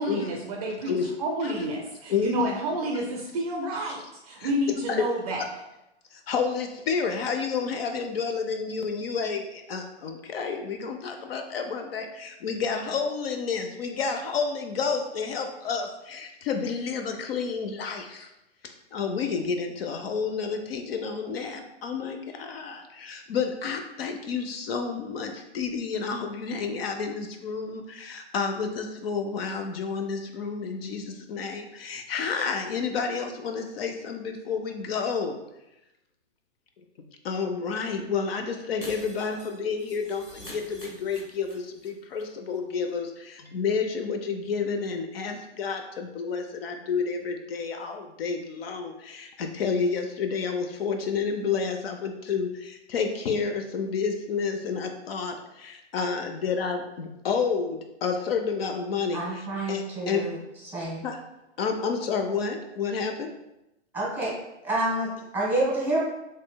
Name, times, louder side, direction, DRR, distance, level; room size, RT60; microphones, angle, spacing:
voice 1, 0.0-5.4, right 1 dB, 35° right, 0 dB, 0.4 m, -30 dB
voice 2, 2.1-2.5 2.9-3.0 3.7-3.9 4.4-4.5 4.9-5.1 5.4-5.5 6.1-18.3 18.6-35.4 37.2-60.2 61.0-61.2 61.6-63.3, left 5 dB, 60° left, 5 dB, 0.5 m, -30 dB
Shatter, 38.8-41.9 42.1-42.2 42.5-42.6, left 1 dB, 20° left, 1.3 m, -45 dB
voice 3, 59.1-60.4 60.7-61.0 63.9-64.3 64.6-66.0, right 2 dB, 5° right, -4 dB, 1.1 m, -28 dB
4.3 x 3.1 x 2.2 m, 0.92 s
hypercardioid pair, 135°, 35 cm